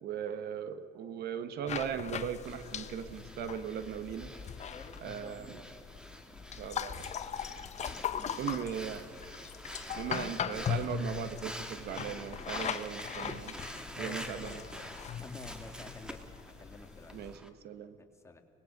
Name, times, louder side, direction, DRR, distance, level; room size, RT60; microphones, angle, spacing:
voice 1, 0.0-4.3 5.0-5.6 6.6-7.0 8.4-9.0 9.9-13.5 13.9-14.6 17.1-17.9, right 8 dB, 70° right, 12 dB, 1.2 m, -38 dB
sound 1, 1.7-17.4, left 7 dB, 40° left, 1.1 m, -40 dB
Breathing, 2.4-17.5, equal, 5° right, 1.8 m, -47 dB
voice 2, 4.7-5.8 7.8-8.9 13.9-14.6 15.2-17.3 18.0-18.4, left 3 dB, 15° left, 3 dB, 2.6 m, -50 dB
24.5 x 19.5 x 6.6 m, 2.7 s
cardioid pair, 110°, 17 cm